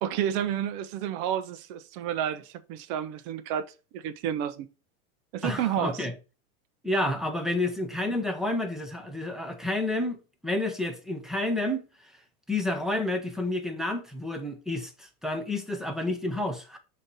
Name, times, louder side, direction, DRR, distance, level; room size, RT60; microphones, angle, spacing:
voice 1, 0.0-3.7 3.9-4.7 5.3-6.1, right 10 dB, 45° right, 1.0 m, -30 dB
voice 2, 5.4-6.1 6.8-11.8 12.5-16.8, left 1 dB, ahead, 1.0 m, -30 dB
6.3 x 3.3 x 5.7 m
hypercardioid pair, 125°, 44 cm